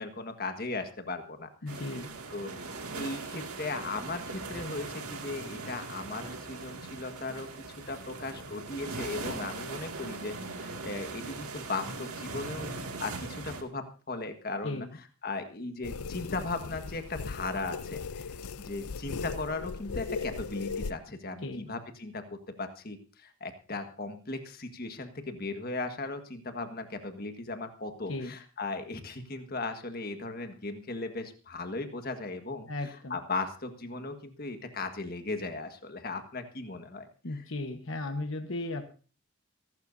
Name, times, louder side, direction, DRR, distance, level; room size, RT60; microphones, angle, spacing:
voice 1, 0.0-1.8 2.3-2.6 2.9-7.5 7.9-14.9 15.2-18.3 18.6-37.4, left 3 dB, 40° left, 7 dB, 1.6 m, -37 dB
voice 2, 1.6-2.1 14.6-15.0 21.4-21.7 28.1-28.3 32.7-33.2 37.2-38.8, left 2 dB, 60° left, 5 dB, 1.2 m, -36 dB
sound 1, 1.7-13.6, right 3 dB, 80° right, 2.3 m, -40 dB
sound 2, 15.8-20.9, left 4 dB, 80° left, 0.6 m, -38 dB
24.0 x 12.0 x 2.7 m, 0.36 s
head